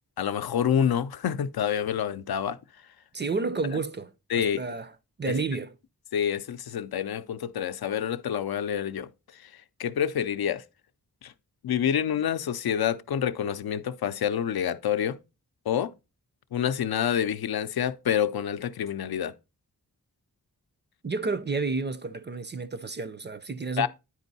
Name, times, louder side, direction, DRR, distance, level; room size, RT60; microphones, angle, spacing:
voice 1, 0.2-2.6 4.3-4.6 5.3-5.4 6.1-9.1 9.4-9.5 9.8-10.6 11.2-11.3 11.6-15.2 15.7-15.9 16.5-19.3 23.8-23.9, left 9 dB, 90° left, 0.5 m, -27 dB
voice 2, 3.1-4.9 5.2-5.7 21.0-23.9, right 4 dB, 30° right, 0.4 m, -31 dB
9.9 x 4.4 x 4.0 m
wide cardioid pair, 125°, 36 cm